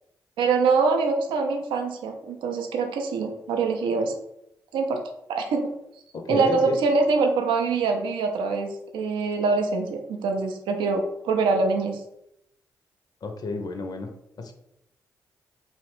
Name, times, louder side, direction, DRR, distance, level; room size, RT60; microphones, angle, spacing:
voice 1, 0.4-4.1 4.7-5.0 5.3-5.7 6.3-12.0, right 4 dB, 75° right, 4 dB, 0.4 m, -24 dB
voice 2, 6.1-6.8 13.2-14.1, left 3 dB, 50° left, 5 dB, 0.4 m, -30 dB
2.8 x 2.0 x 3.0 m, 0.79 s
hypercardioid pair, 40°, 8 cm